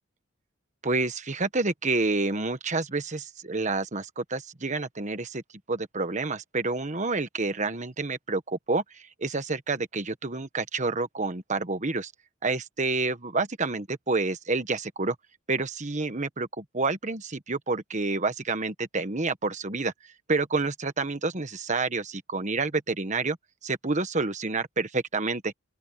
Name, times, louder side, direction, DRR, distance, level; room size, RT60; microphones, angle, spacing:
voice 1, 0.8-5.4 5.7-12.1 12.4-15.1 15.5-19.9 20.3-23.4 23.6-25.5, right 3 dB, 35° right, 1.4 m, -29 dB
open air
head